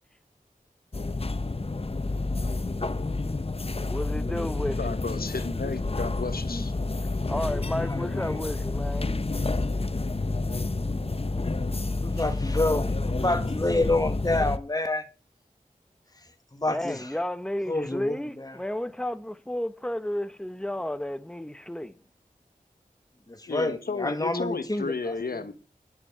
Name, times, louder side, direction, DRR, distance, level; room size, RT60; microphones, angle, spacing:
sound 1, 0.9-14.6, left 3 dB, 40° left, 0.8 m, -29 dB
voice 1, 3.9-4.8 7.3-9.2 16.7-22.0, left 1 dB, 5° left, 1.0 m, -32 dB
voice 2, 4.8-6.7 23.5-25.5, left 4 dB, 90° left, 1.3 m, -33 dB
voice 3, 7.8-8.4 12.0-15.1 16.1-17.2 17.7-18.6 23.3-25.5, left 2 dB, 25° left, 1.8 m, -29 dB
10.5 x 7.2 x 7.2 m
wide cardioid pair, 45°, 15 cm